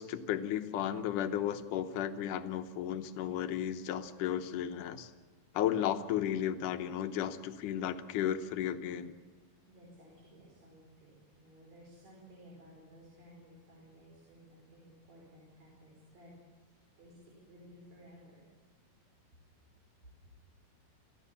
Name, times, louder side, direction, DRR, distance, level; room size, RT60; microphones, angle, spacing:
voice 1, 0.0-5.1 5.5-9.1, left 10 dB, 70° left, 8 dB, 2.2 m, -34 dB
voice 2, 9.6-16.3 17.0-18.5, equal, 45° right, -4 dB, 6.0 m, -57 dB
27.5 x 15.0 x 7.1 m, 1.5 s
omnidirectional pair, 4.4 m